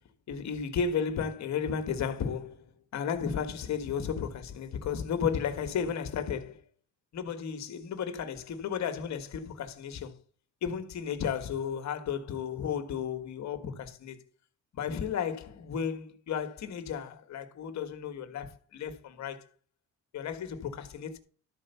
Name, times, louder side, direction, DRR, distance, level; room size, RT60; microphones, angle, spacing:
voice 1, 0.3-2.6 2.9-6.6 7.1-10.2 10.6-14.2 14.7-19.5 20.1-21.2, left 7 dB, 65° left, 1.6 m, -33 dB
13.0 x 4.5 x 6.8 m
cardioid pair, 90°, 30 cm